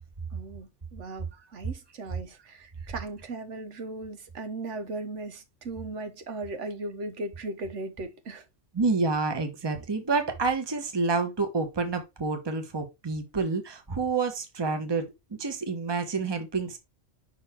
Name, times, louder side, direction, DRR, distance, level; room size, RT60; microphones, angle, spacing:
voice 1, 0.3-8.4, right 2 dB, 85° right, 1.3 m, -37 dB
voice 2, 8.7-15.1 15.4-16.8, right 4 dB, 25° right, 1.0 m, -28 dB
5.7 x 4.2 x 4.2 m
omnidirectional pair, 1.2 m